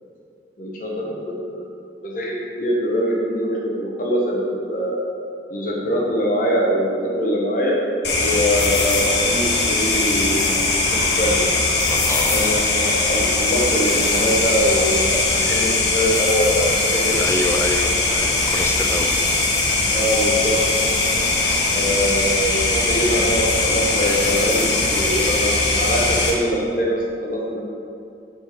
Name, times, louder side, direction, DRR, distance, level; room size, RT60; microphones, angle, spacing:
voice 1, 0.6-1.7 2.0-5.0 5.5-7.8 8.2-10.7 11.0-11.4 12.3-16.7 16.9-17.2 19.9-20.6 21.7-27.0 27.2-27.6, equal, 50° left, -3 dB, 1.4 m, -23 dB
sound 1, 8.0-26.3, left 3 dB, 75° left, 1.1 m, -20 dB
voice 2, 11.9-12.7 17.2-19.4, left 2 dB, 15° left, 4 dB, 0.3 m, -27 dB
7.8 x 4.4 x 5.1 m, 2.6 s
head